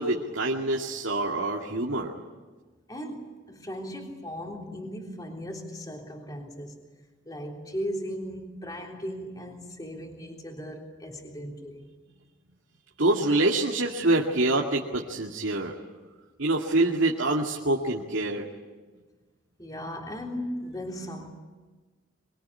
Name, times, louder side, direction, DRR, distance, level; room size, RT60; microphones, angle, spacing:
voice 1, 0.0-2.1 13.0-15.7 16.4-18.5, right 2 dB, 80° right, -1 dB, 2.4 m, -25 dB
voice 2, 2.9-6.8 7.3-11.9 19.6-21.3, equal, 20° left, 1 dB, 3.5 m, -37 dB
24.5 x 24.5 x 9.8 m, 1.3 s
head